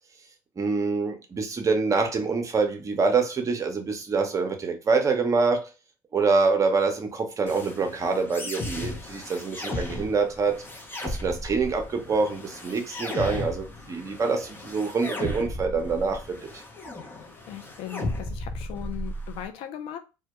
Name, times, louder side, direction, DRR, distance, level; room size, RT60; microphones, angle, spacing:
voice 1, 0.6-5.7 6.1-10.6 11.0-16.6, right 4 dB, 30° right, 0.6 m, -25 dB
sound 1, 7.5-19.5, left 1 dB, 20° left, 0.7 m, -35 dB
voice 2, 17.5-20.0, left 11 dB, 65° left, 0.4 m, -38 dB
2.1 x 2.1 x 2.8 m
hypercardioid pair, 80°, 11 cm